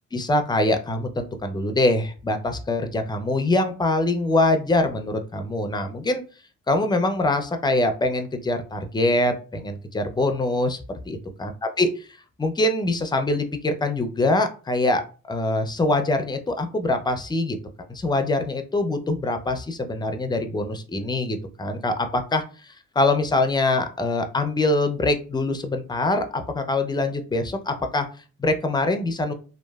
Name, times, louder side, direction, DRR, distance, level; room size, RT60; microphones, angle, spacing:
voice 1, 0.1-6.2 6.7-10.8 11.1-11.5 11.8-12.1 12.4-15.0 15.3-17.6 17.9-28.1 28.4-29.3, left 2 dB, 15° left, 7 dB, 0.5 m, -24 dB
3.0 x 2.3 x 2.3 m, 0.36 s
cardioid pair, 90°, 30 cm